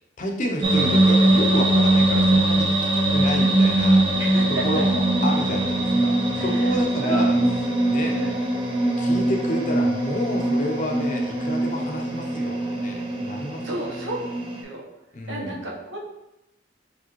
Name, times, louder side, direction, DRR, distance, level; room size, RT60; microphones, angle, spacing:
voice 1, 0.2-7.4 7.9-8.1 9.0-13.6 15.1-15.6, equal, 45° left, 1 dB, 0.6 m, -30 dB
sound 1, 0.6-14.6, right 1 dB, 25° right, 0.6 m, -21 dB
voice 2, 4.2-4.9 6.4-7.4 8.1-8.4 13.6-14.3 14.6-14.9 15.3-16.0, right 1 dB, 85° right, -1 dB, 1.0 m, -32 dB
5.0 x 3.2 x 3.0 m, 0.87 s
head